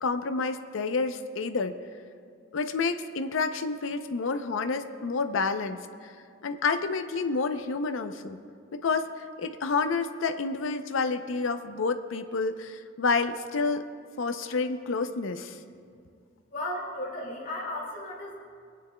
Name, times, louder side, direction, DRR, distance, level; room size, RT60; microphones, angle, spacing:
voice 1, 0.0-1.7 2.5-6.1 6.4-8.4 8.7-9.1 9.4-13.8 14.2-15.6, left 4 dB, 75° left, 9 dB, 0.5 m, -29 dB
voice 2, 16.5-18.3, left 1 dB, 40° left, -3 dB, 2.1 m, -35 dB
25.0 x 9.4 x 2.2 m, 2.2 s
head